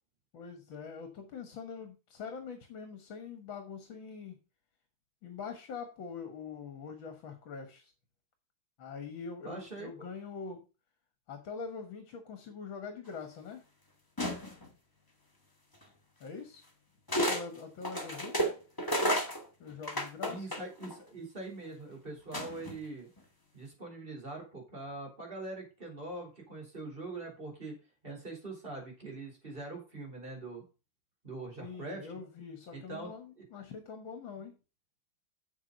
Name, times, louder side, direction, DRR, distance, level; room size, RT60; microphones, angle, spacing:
voice 1, 0.3-4.4 5.2-7.9 8.8-10.6 11.3-13.6 16.2-16.7 17.2-18.5 19.6-20.5 31.6-34.5, left 5 dB, 65° left, 7 dB, 2.1 m, -44 dB
voice 2, 9.4-10.1 20.3-23.1 23.5-27.7 28.0-30.6 31.2-32.1 32.7-33.1 33.4-33.5, right 2 dB, 25° right, 0 dB, 4.4 m, -43 dB
sound 1, 14.2-14.7 15.8-15.9 17.1-17.4 17.8-20.9 22.3-22.8, equal, 10° left, 1.5 m, -32 dB
7.9 x 7.3 x 5.3 m, 0.31 s
omnidirectional pair, 2.3 m